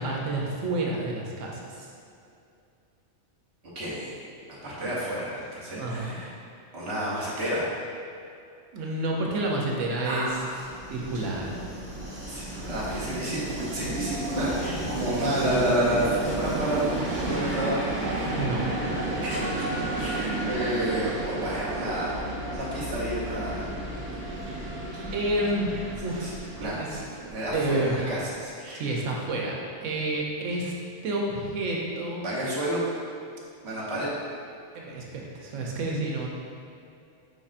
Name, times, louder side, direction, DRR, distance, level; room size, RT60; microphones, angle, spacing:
voice 1, 0.0-1.9 5.8-6.2 8.7-10.3 10.9-11.6 15.0-15.6 18.3-18.7 25.1-26.3 26.6-26.9 27.5-28.0 28.7-30.7 31.0-32.2 34.7-36.3, right 2 dB, 85° right, -2 dB, 1.0 m, -29 dB
voice 2, 3.7-4.1 4.6-6.3 6.7-7.7 9.9-10.5 12.3-17.8 19.2-22.1 22.5-23.7 26.2-28.8 32.2-32.8 33.6-34.1, right 1 dB, 60° right, -7 dB, 1.3 m, -30 dB
Train, 10.3-28.0, right 2 dB, 45° right, 1.1 m, -32 dB
5.4 x 3.4 x 2.5 m, 2.5 s
omnidirectional pair, 1.3 m